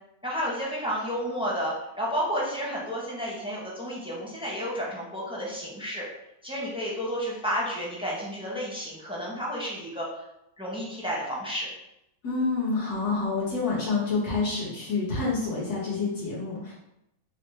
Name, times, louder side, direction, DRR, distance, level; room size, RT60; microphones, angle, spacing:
voice 1, 0.2-6.0 6.4-10.2 10.6-11.7, equal, 5° right, -4 dB, 0.4 m, -31 dB
voice 2, 12.2-16.7, left 4 dB, 85° left, -9 dB, 1.9 m, -28 dB
5.0 x 2.1 x 3.2 m, 0.86 s
omnidirectional pair, 1.6 m